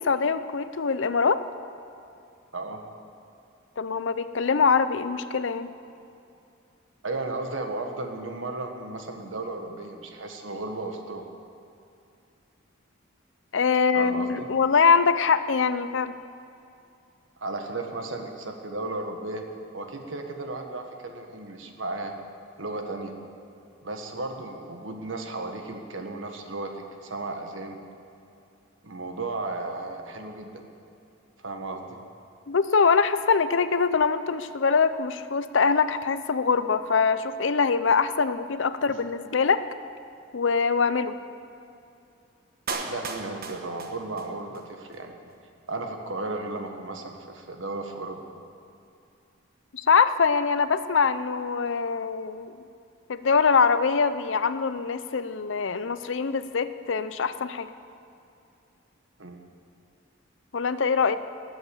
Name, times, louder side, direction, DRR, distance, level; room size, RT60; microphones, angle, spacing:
voice 1, 0.0-1.4 3.8-5.7 13.5-16.1 32.5-39.6 40.3-41.1 49.7-52.5 53.1-57.7 60.5-61.2, left 5 dB, 65° left, 13 dB, 0.6 m, -23 dB
voice 2, 7.0-11.2 13.9-14.5 17.4-19.4 19.7-22.1 22.6-23.1 23.8-27.8 28.8-30.7 31.4-32.0 42.8-45.1 45.7-48.2 59.2-59.4, right 2 dB, 70° right, 4 dB, 1.5 m, -34 dB
Clapping, 42.7-44.7 44.9-45.0, right 4 dB, 50° right, 1.1 m, -35 dB
19.0 x 8.0 x 7.0 m, 2.6 s
head